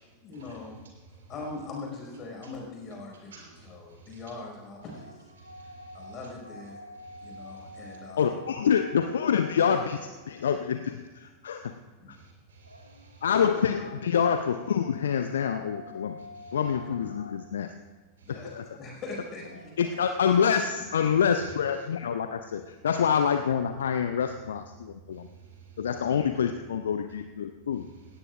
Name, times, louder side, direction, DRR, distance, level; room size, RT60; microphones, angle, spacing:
voice 1, 0.2-0.9 1.3-5.3 5.9-6.8 7.2-8.4 12.0-12.2 18.2-18.5 18.7-19.9 26.0-26.2, left 3 dB, 30° left, -1 dB, 5.5 m, -41 dB
voice 2, 3.3-4.1 5.4-6.1 7.0-7.9 12.1-13.2 16.3-16.6 18.2-18.3 25.1-25.8, right 4 dB, 65° right, 0 dB, 4.0 m, -53 dB
sound 1, 4.8-10.8 12.6-18.0 19.3-21.2, equal, 90° left, 0.9 m, -48 dB
voice 3, 8.2-11.7 12.1-12.2 13.2-16.2 16.5-17.7 18.3-18.7 19.8-25.3 25.8-27.9, left 7 dB, 65° left, 8 dB, 0.6 m, -27 dB
17.5 x 16.5 x 2.5 m, 1.2 s
figure-of-eight pair, 90°, 0 cm